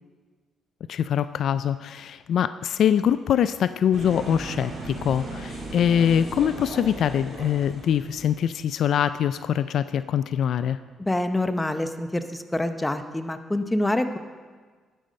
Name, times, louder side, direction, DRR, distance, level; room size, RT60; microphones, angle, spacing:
voice 1, 0.9-10.8, left 9 dB, 70° left, 13 dB, 0.3 m, -23 dB
sound 1, 3.9-8.5, right 2 dB, 55° right, 4.1 m, -37 dB
voice 2, 11.0-14.2, left 1 dB, 10° left, 9 dB, 0.8 m, -26 dB
12.5 x 9.1 x 5.3 m, 1.5 s
cardioid pair, 90°, 0 cm